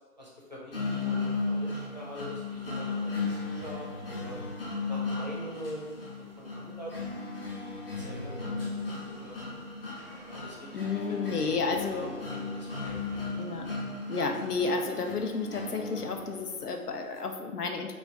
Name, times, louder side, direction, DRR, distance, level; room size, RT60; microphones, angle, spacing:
voice 1, 0.2-4.4 4.9-7.0 8.0-8.9 9.2-9.4 10.3-13.3, equal, 30° right, -5 dB, 0.5 m, -44 dB
sound 1, 0.7-16.7, left 3 dB, 40° left, 0.6 m, -36 dB
voice 2, 10.7-12.1 13.4-13.7 14.1-17.9, left 4 dB, 80° left, 5 dB, 0.7 m, -31 dB
3.1 x 2.4 x 4.0 m, 1.3 s
figure-of-eight pair, 145°, 45 cm